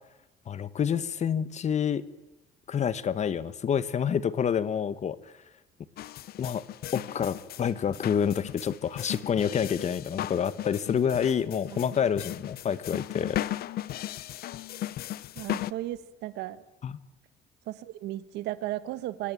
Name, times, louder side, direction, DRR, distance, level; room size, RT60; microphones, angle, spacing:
voice 1, 0.5-2.1 2.7-5.2 6.4-6.6 6.9-13.4 16.8-16.9, left 8 dB, 45° left, 15 dB, 1.3 m, -28 dB
sound 1, 6.0-15.7, left 13 dB, 65° left, 0.8 m, -36 dB
voice 2, 15.3-16.6 17.7-19.3, right 15 dB, 85° right, 14 dB, 1.5 m, -35 dB
26.0 x 17.0 x 9.2 m, 1.0 s
cardioid pair, 110°, 17 cm